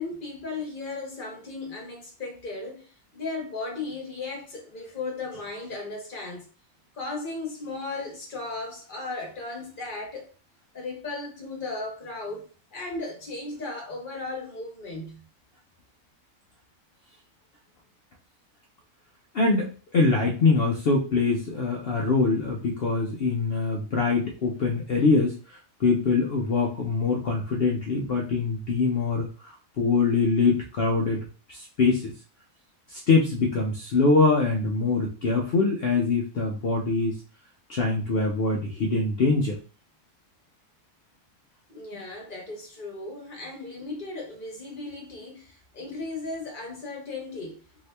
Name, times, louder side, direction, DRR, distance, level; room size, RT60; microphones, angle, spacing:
voice 1, 0.0-6.5 6.9-10.3 10.7-15.3 41.7-47.6, left 3 dB, 40° left, 1.0 m, -36 dB
voice 2, 19.3-32.1 32.9-37.2 37.7-39.6, left 3 dB, 60° left, 0.7 m, -24 dB
2.8 x 2.7 x 3.2 m
omnidirectional pair, 1.4 m